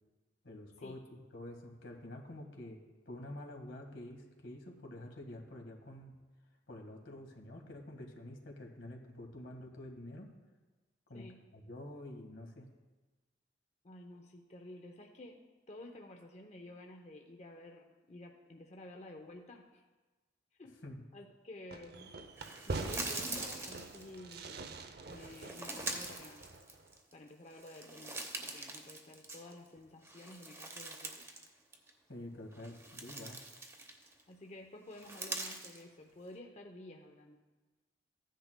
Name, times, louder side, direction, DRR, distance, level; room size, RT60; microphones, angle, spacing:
voice 1, 0.4-2.8 3.1-6.1 6.7-10.3 11.1-11.2 11.5-12.7 20.8-21.0 32.1-33.4, left 1 dB, 90° left, 2 dB, 1.7 m, -48 dB
voice 2, 13.8-15.4 15.7-19.8 20.6-20.8 21.1-22.1 22.7-26.5 27.1-31.3 34.3-37.4, left 1 dB, 35° left, 3 dB, 0.7 m, -51 dB
Fireworks, 21.7-26.9, right 3 dB, 60° right, 0.6 m, -44 dB
sound 1, 22.4-24.4 25.1-27.1 27.5-29.7 30.0-31.5 31.7-31.9 32.5-34.2 34.9-35.8, right 2 dB, 15° right, 0.9 m, -43 dB
15.5 x 10.0 x 2.2 m, 1.2 s
head